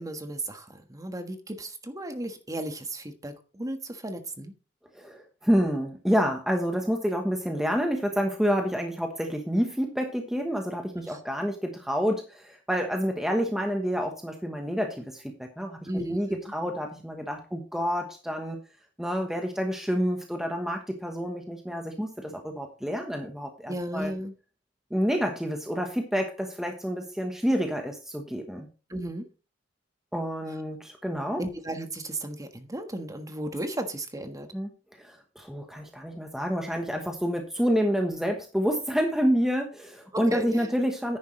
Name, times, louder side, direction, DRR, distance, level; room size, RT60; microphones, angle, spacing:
voice 1, 0.0-4.5 10.9-11.2 15.9-16.4 23.7-24.3 28.9-29.3 31.4-34.5 40.1-40.7, right 1 dB, 20° right, 7 dB, 1.4 m, -35 dB
voice 2, 4.9-18.6 19.0-24.1 24.9-28.7 30.1-31.4 34.5-34.7 35.0-41.2, equal, ahead, 3 dB, 1.1 m, -28 dB
10.5 x 9.8 x 3.2 m, 0.34 s
head